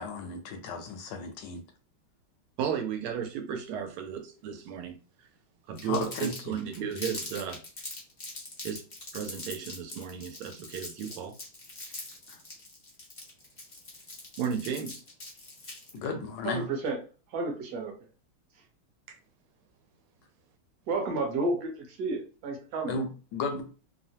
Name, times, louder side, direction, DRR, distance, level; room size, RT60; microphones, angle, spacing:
voice 1, 0.0-1.6 5.9-6.3 12.3-12.4 15.9-16.7 22.9-23.6, left 3 dB, 75° left, 1.0 m, -34 dB
voice 2, 2.6-5.0 5.7-7.6 8.6-8.8 9.1-11.3 14.4-15.0 19.1-19.2, right 8 dB, 85° right, 1.5 m, -34 dB
Crumpling crinkling, 5.8-16.0, left 2 dB, 50° left, 0.5 m, -42 dB
voice 3, 16.4-17.0 17.3-17.9 20.9-22.9, right 2 dB, 60° right, 1.2 m, -31 dB
3.4 x 2.0 x 2.7 m
omnidirectional pair, 2.3 m